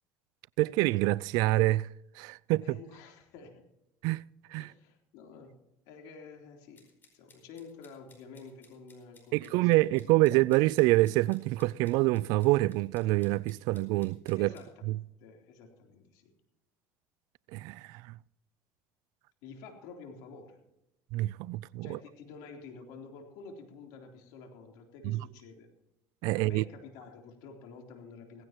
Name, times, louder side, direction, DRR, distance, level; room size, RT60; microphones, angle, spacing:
voice 1, 0.6-1.9 2.2-2.8 4.0-4.2 4.5-4.7 9.3-14.5 14.9-15.0 17.5-18.0 21.1-22.0 25.0-25.2 26.2-26.6, right 19 dB, 75° right, 0.4 m, -26 dB
voice 2, 2.6-3.6 4.6-5.6 5.9-6.9 7.1-9.9 14.4-16.3 19.4-20.6 21.8-25.7 26.3-28.4, left 4 dB, 75° left, 3.6 m, -50 dB
sound 1, 6.8-14.7, left 4 dB, 30° left, 4.8 m, -62 dB
17.5 x 16.0 x 3.0 m
supercardioid pair, 105°, 7 cm